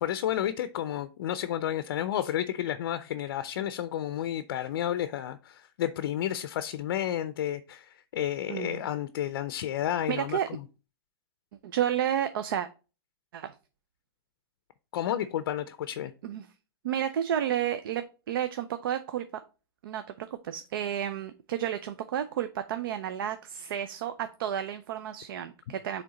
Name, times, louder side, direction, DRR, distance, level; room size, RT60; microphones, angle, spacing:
voice 1, 0.0-10.6 14.9-16.1, left 11 dB, 55° left, 0.5 m, -31 dB
voice 2, 8.5-8.8 10.1-10.5 11.6-12.7 13.3-13.5 16.2-16.5 16.8-19.3 19.8-26.0, right 10 dB, 60° right, 0.6 m, -31 dB
8.5 x 3.4 x 4.0 m
supercardioid pair, 165°, 13 cm